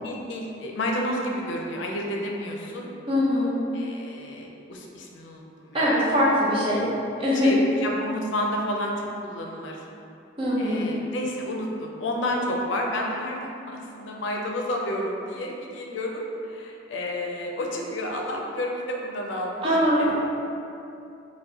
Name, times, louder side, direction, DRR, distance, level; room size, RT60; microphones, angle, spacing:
voice 1, 0.0-2.9 3.7-6.0 7.3-9.8 10.6-20.1, left 1 dB, 90° left, 0 dB, 0.5 m, -31 dB
voice 2, 3.1-3.6 5.7-6.8 7.2-7.5 10.4-10.9 19.6-20.1, equal, 30° right, -7 dB, 0.6 m, -22 dB
4.3 x 2.2 x 2.7 m, 2.7 s
head